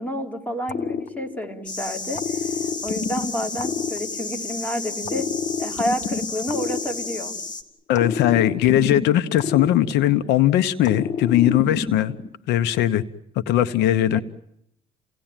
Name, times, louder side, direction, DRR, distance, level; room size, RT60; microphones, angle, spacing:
voice 1, 0.0-2.5 2.8-5.3 5.6-7.3 14.1-14.2, equal, 10° left, 2 dB, 4.0 m, -29 dB
sound 1, 0.7-1.7 2.1-4.6 5.0-7.5 7.9-10.4 10.8-12.3, left 5 dB, 45° left, 1.4 m, -29 dB
sound 2, 1.7-7.6, left 3 dB, 25° left, 3.2 m, -33 dB
voice 2, 7.9-12.1 12.5-13.0 13.5-14.2, left 12 dB, 85° left, 12 dB, 1.1 m, -19 dB
30.0 x 18.0 x 9.1 m, 0.77 s
cardioid pair, 110°, 17 cm